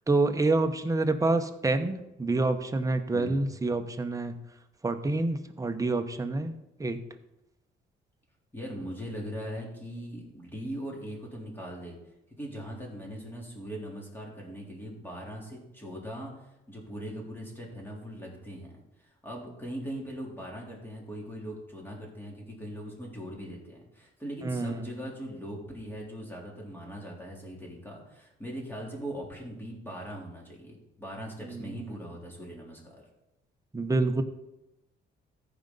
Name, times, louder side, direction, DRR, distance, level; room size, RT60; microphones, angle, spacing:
voice 1, 0.1-4.4 4.8-7.0 24.4-24.9 31.4-31.9 33.7-34.2, right 2 dB, 15° right, 7 dB, 0.9 m, -27 dB
voice 2, 3.1-3.5 8.5-12.0 12.4-16.3 16.7-18.8 19.2-33.0, equal, 10° left, -2 dB, 3.4 m, -40 dB
14.5 x 5.1 x 4.0 m, 0.94 s
cardioid pair, 90°, 20 cm